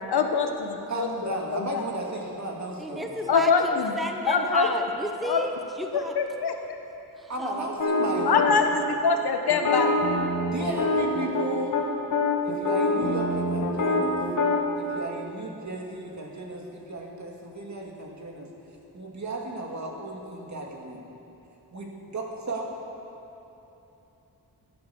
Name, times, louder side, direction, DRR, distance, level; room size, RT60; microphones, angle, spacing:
voice 1, 0.1-1.7 3.3-4.0 4.3-4.7 5.2-5.4 5.9-6.5 8.3-9.9, left 5 dB, 80° left, 5 dB, 1.2 m, -24 dB
voice 2, 0.9-3.4 7.3-8.7 10.5-11.8 12.4-14.2 14.8-18.5 18.9-21.0 21.7-22.7, right 1 dB, 45° right, 0 dB, 2.1 m, -34 dB
voice 3, 2.8-6.1 7.2-7.7, right 1 dB, ahead, 3 dB, 0.8 m, -33 dB
sound 1, 7.8-8.5 9.5-11.5 11.7-11.8 12.1-14.6, left 2 dB, 55° left, 2.2 m, -24 dB
14.0 x 11.5 x 7.0 m, 3.0 s
wide cardioid pair, 155°, 38 cm